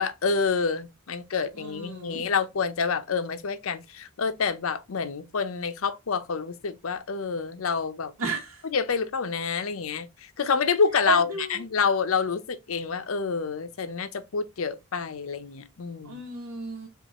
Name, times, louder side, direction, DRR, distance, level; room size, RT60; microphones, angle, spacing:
voice 1, 0.0-8.1 8.6-10.1 10.4-16.2, left 5 dB, 80° left, 0.6 m, -28 dB
voice 2, 1.6-2.2 8.2-8.6 11.1-11.6 16.0-16.9, right 4 dB, 90° right, 1.0 m, -32 dB
5.4 x 2.5 x 2.9 m
head